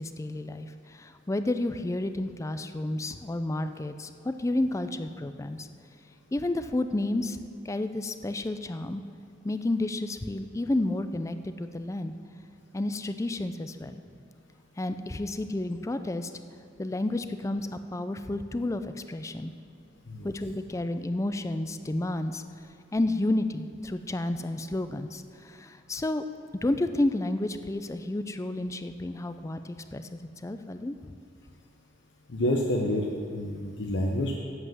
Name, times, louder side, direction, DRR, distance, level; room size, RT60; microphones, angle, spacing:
voice 1, 0.0-5.7 6.3-7.4 7.7-9.0 9.4-12.1 12.7-14.0 14.8-16.3 16.8-19.5 20.2-22.4 22.9-26.2 26.6-31.1, left 2 dB, 15° left, 10 dB, 0.4 m, -31 dB
voice 2, 32.3-34.3, left 1 dB, 80° left, -1 dB, 0.9 m, -28 dB
8.1 x 7.7 x 7.6 m, 2.4 s
head